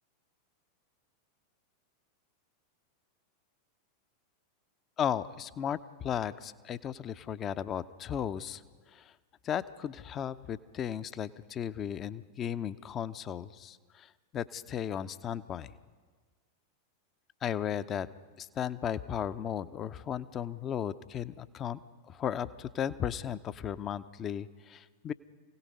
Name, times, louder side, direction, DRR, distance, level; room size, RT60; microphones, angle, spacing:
voice 1, 5.0-8.6 8.9-9.1 9.4-15.7 17.4-18.1 18.4-21.8 22.1-25.1, left 9 dB, 30° left, 15 dB, 0.6 m, -35 dB
28.5 x 17.0 x 5.4 m, 1.4 s
figure-of-eight pair, 90°, 0 cm